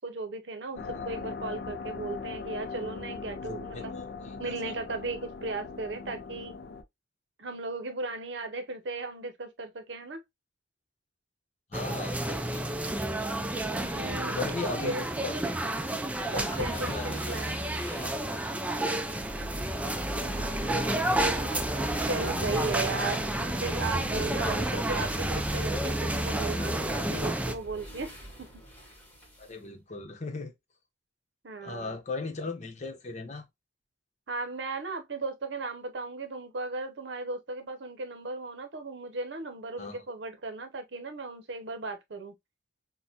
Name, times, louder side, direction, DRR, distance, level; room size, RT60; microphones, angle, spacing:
voice 1, 0.0-3.9 4.4-6.5 7.4-10.2 13.8-15.5 16.3-17.6 20.6-21.1 22.0-23.2 23.6-28.1 28.4-28.5 31.4-32.0 34.3-42.3, right 3 dB, 75° right, 0.7 m, -36 dB
sound 1, 0.8-6.8, left 4 dB, 60° left, 0.4 m, -39 dB
voice 2, 3.5-4.7 11.7-12.6 14.3-15.3 16.3-17.2 18.0-18.1 22.3-22.7 27.0-27.4 29.4-30.5 31.6-33.4 39.8-40.0, left 3 dB, 40° left, 0.8 m, -38 dB
sound 2, 11.7-27.5, right 1 dB, 10° right, 0.4 m, -30 dB
sound 3, 15.7-29.5, equal, 10° left, 1.3 m, -41 dB
6.2 x 2.1 x 2.8 m
head